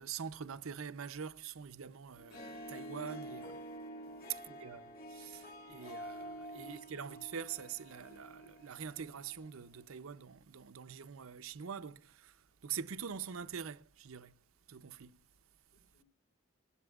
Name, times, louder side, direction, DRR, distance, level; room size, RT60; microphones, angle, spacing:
voice 1, 0.0-3.6 4.5-14.4 14.7-15.2, right 7 dB, 85° right, 0.6 m, -45 dB
Harp, 2.2-9.6, equal, 45° left, 2.0 m, -48 dB
voice 2, 4.0-4.5 5.0-5.4 15.7-16.0, equal, 75° left, 4.4 m, -75 dB
20.0 x 19.0 x 2.4 m
head